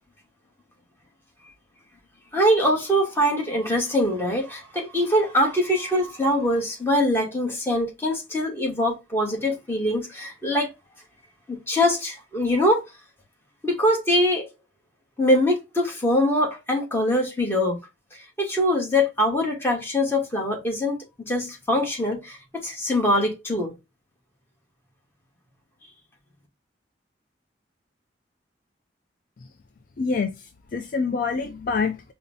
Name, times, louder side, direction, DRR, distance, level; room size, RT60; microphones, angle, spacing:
voice 1, 2.3-10.7 11.5-12.8 13.6-14.5 15.2-17.8 18.4-21.0 21.3-23.7, left 1 dB, 15° left, 1.1 m, -23 dB
voice 2, 30.0-32.1, left 4 dB, 50° left, 0.4 m, -26 dB
5.3 x 2.0 x 2.6 m
head